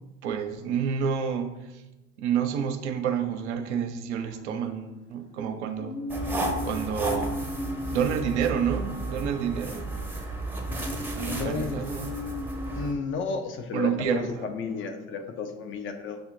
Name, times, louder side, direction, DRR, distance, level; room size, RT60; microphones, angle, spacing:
voice 1, 0.2-1.8 2.2-6.0 6.6-7.4 7.9-9.9 11.1-12.4 13.7-14.5, right 7 dB, 70° right, 7 dB, 0.5 m, -29 dB
sound 1, 4.1-5.1 5.8-9.7 10.7-13.1, left 1 dB, 90° left, 1.2 m, -37 dB
sound 2, 6.1-12.9, right 1 dB, 5° right, 0.7 m, -33 dB
voice 2, 11.2-11.8 12.7-16.2, left 4 dB, 35° left, 6 dB, 0.5 m, -32 dB
6.1 x 2.8 x 2.5 m, 1.0 s
figure-of-eight pair, 55°, 36 cm